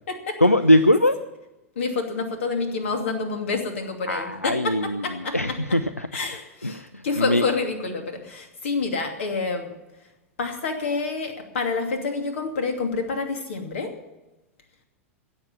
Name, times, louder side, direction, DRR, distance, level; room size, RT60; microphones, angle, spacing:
voice 1, 0.4-1.2 4.1-6.1 6.6-7.4, left 1 dB, 90° left, 11 dB, 0.6 m, -21 dB
voice 2, 1.8-5.3 6.1-9.7 10.4-13.9, left 4 dB, 60° left, 5 dB, 2.6 m, -28 dB
16.5 x 7.7 x 9.8 m, 1.0 s
figure-of-eight pair, 90°, 8 cm